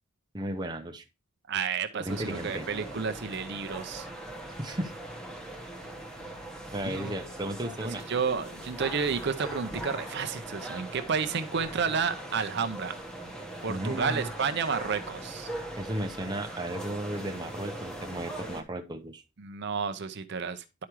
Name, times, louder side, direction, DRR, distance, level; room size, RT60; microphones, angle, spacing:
voice 1, 0.3-1.0 2.0-2.7 4.6-4.9 5.4-5.5 6.0-6.1 6.7-8.0 13.7-14.3 15.8-19.2, right 1 dB, 20° right, 0.7 m, -34 dB
voice 2, 1.5-4.1 6.8-7.1 7.9-12.9 13.6-15.5 19.4-20.8, right 5 dB, 55° right, 0.6 m, -31 dB
sound 1, 2.1-18.6, right 1 dB, 5° left, 1.1 m, -40 dB
11.0 x 4.8 x 3.0 m
head